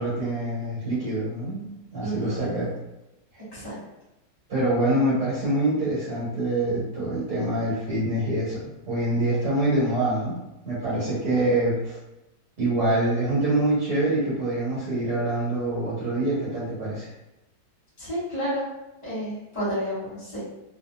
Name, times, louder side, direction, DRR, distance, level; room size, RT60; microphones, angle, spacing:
voice 1, 0.0-1.6 1.9-2.7 4.5-8.6 8.9-10.3 10.6-12.0 12.6-17.1, right 1 dB, 65° right, -9 dB, 1.6 m, -25 dB
voice 2, 2.0-2.5 3.5-3.8 18.0-18.6 19.0-20.4, equal, 25° left, -10 dB, 1.1 m, -30 dB
2.9 x 2.7 x 2.3 m, 0.92 s
omnidirectional pair, 2.0 m